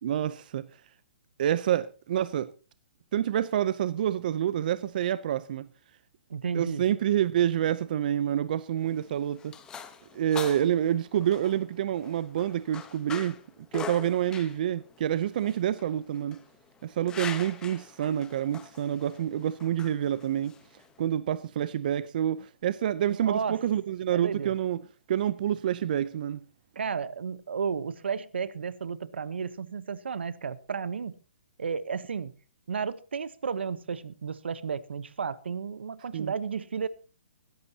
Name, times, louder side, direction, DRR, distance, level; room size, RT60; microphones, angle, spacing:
voice 1, 0.0-0.7 1.4-2.5 3.1-5.7 6.5-9.5 10.1-13.4 13.7-16.4 16.8-20.6 21.0-24.8 25.1-26.4 36.1-36.3, right 10 dB, 50° right, 0.6 m, -28 dB
voice 2, 6.3-6.8 23.3-23.6 24.1-24.5 26.8-31.1 31.6-32.3 32.7-36.9, right 6 dB, 85° right, 1.0 m, -33 dB
sound 1, 8.8-21.1, left 7 dB, 10° left, 1.0 m, -43 dB
21.0 x 11.0 x 2.8 m
hypercardioid pair, 150°, 6 cm